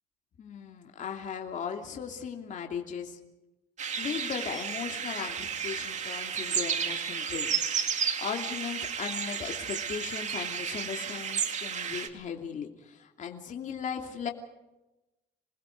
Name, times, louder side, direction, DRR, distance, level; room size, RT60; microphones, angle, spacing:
voice 1, 0.4-3.2 4.0-14.3, left 7 dB, 45° left, 3 dB, 2.8 m, -37 dB
sound 1, 3.8-12.1, right 7 dB, 45° right, 2.5 m, -32 dB
28.0 x 20.0 x 5.3 m, 0.99 s
cardioid pair, 110°, 17 cm